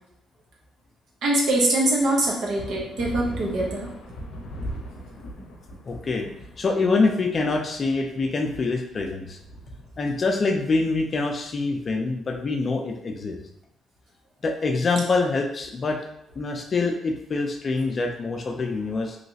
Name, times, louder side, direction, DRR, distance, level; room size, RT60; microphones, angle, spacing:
voice 1, 1.2-3.9, right 1 dB, 70° right, -2 dB, 1.0 m, -23 dB
sound 1, 2.6-12.5, equal, 85° left, 0.6 m, -40 dB
voice 2, 5.9-6.3 6.6-9.4 10.0-13.4 14.4-16.0 16.4-19.2, left 3 dB, 40° left, 4 dB, 0.5 m, -25 dB
3.1 x 2.9 x 2.7 m, 0.77 s
cardioid pair, 90°, 0 cm